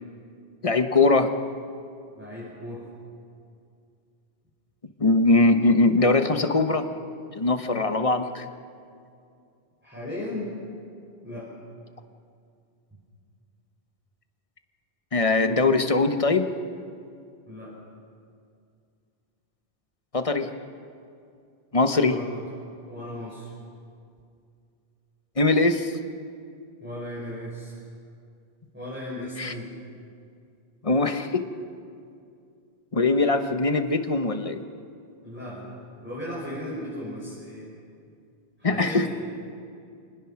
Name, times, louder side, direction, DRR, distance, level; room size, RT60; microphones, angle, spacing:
voice 1, 0.6-1.3 5.0-6.9 7.4-8.4 15.1-16.5 20.1-20.5 21.7-22.2 25.4-25.9 29.4-29.5 30.8-31.5 32.9-34.6 38.6-39.1, left 3 dB, 35° left, 7 dB, 1.1 m, -21 dB
voice 2, 2.1-2.8 9.8-10.5 11.2-11.5 17.5-17.7 22.0-22.4 22.9-23.5 26.8-27.8 28.7-29.7 35.2-37.7 38.6-39.1, left 1 dB, 10° right, -8 dB, 6.2 m, -36 dB
27.0 x 19.5 x 5.9 m, 2.4 s
omnidirectional pair, 1.1 m